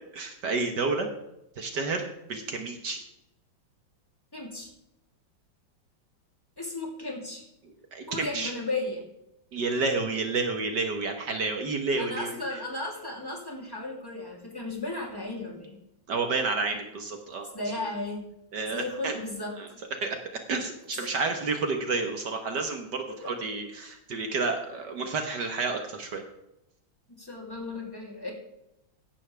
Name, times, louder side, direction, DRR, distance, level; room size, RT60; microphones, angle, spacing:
voice 1, 0.1-1.1 1.6-3.0 7.9-8.5 9.5-12.4 16.1-17.5 18.5-19.2 19.6-19.7 20.0-26.2, right 3 dB, 60° right, 5 dB, 1.8 m, -30 dB
voice 2, 4.3-4.7 6.6-7.4 8.1-9.1 12.0-15.8 17.5-18.2 18.7-19.5 21.0-21.1 23.1-23.2 27.2-28.3, left 2 dB, 10° left, -1 dB, 3.1 m, -35 dB
15.5 x 11.5 x 3.4 m, 0.86 s
omnidirectional pair, 2.1 m